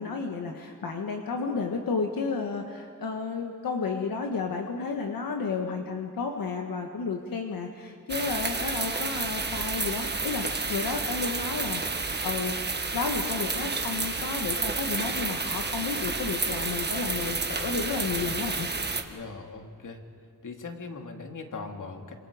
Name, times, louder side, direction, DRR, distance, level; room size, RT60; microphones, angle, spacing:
voice 1, 0.0-12.5 12.9-18.7, left 4 dB, 90° left, 3 dB, 1.5 m, -32 dB
sound 1, 8.1-19.0, right 3 dB, 30° right, 1.5 m, -30 dB
voice 2, 19.1-20.0 20.4-22.1, left 4 dB, 65° left, 3 dB, 2.4 m, -40 dB
28.0 x 26.5 x 5.0 m, 2.3 s
wide cardioid pair, 110°, 34 cm